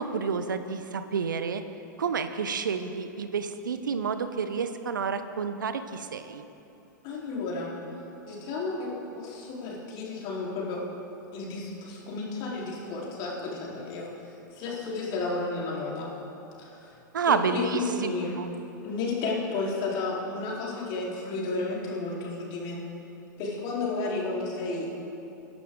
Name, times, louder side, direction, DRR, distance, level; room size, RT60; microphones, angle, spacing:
voice 1, 0.0-1.6 2.0-6.4 17.1-18.1 18.4-18.5, right 5 dB, 80° right, 10 dB, 0.8 m, -29 dB
voice 2, 7.0-7.7 8.3-10.8 11.3-14.1 14.5-16.1 16.6-17.0 17.3-18.4 18.8-22.8 23.4-24.9, left 3 dB, 45° left, -4 dB, 3.8 m, -32 dB
22.0 x 11.5 x 3.8 m, 2.9 s
hypercardioid pair, 100°, 10 cm